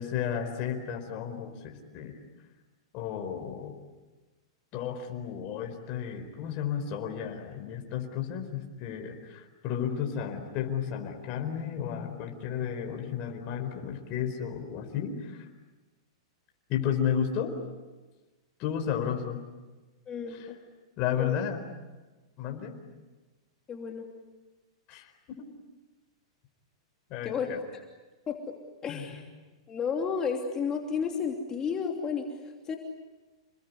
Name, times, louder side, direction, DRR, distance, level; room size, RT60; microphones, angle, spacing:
voice 1, 0.0-2.1 2.9-3.8 4.7-15.5 16.7-17.5 18.6-19.4 20.3-20.5 21.0-21.6 22.4-22.8 24.9-25.5 27.1-27.6 28.9-29.0, left 8 dB, 40° left, 3 dB, 4.5 m, -33 dB
voice 2, 20.1-20.6 21.2-21.4 23.7-24.0 27.2-27.5 28.3-28.4 28.8-29.2 29.7-32.8, left 6 dB, 20° left, 2 dB, 2.9 m, -32 dB
29.0 x 21.0 x 9.6 m, 1.2 s
hypercardioid pair, 135°, 3 cm